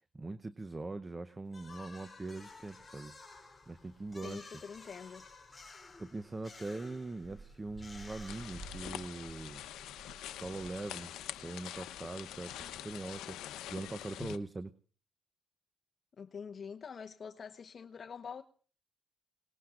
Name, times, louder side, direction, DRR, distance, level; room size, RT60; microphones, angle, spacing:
voice 1, 0.0-3.1 3.7-4.5 6.0-9.6 10.3-11.1 11.4-13.4 13.7-14.7, right 2 dB, 20° right, 0.8 m, -42 dB
sound 1, 1.5-9.2, left 3 dB, 20° left, 3.4 m, -54 dB
sound 2, 2.5-3.1 3.4-3.5 3.8-4.3 4.9-5.1 5.4-5.5 6.3-6.5 7.0-11.8 12.1-13.8 14.1-14.3, right 3 dB, 50° right, 5.3 m, -54 dB
voice 2, 4.2-5.3 16.2-18.4, left 6 dB, 45° left, 0.9 m, -45 dB
sound 3, 8.3-14.4, left 12 dB, 90° left, 0.9 m, -45 dB
28.0 x 19.0 x 2.5 m
cardioid pair, 90°, 0 cm